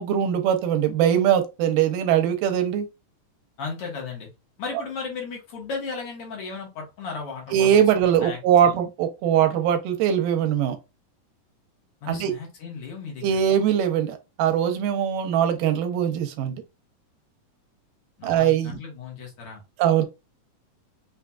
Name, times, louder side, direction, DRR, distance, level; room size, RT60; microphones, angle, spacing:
voice 1, 0.0-2.9 7.5-10.8 12.1-12.3 13.2-16.6 18.2-18.8 19.8-20.0, right 9 dB, 90° right, 2.3 m, -21 dB
voice 2, 3.6-4.3 4.6-7.8 8.2-8.7 12.0-13.2 18.2-19.6, left 4 dB, 60° left, 1.7 m, -35 dB
5.6 x 2.4 x 2.2 m
omnidirectional pair, 3.8 m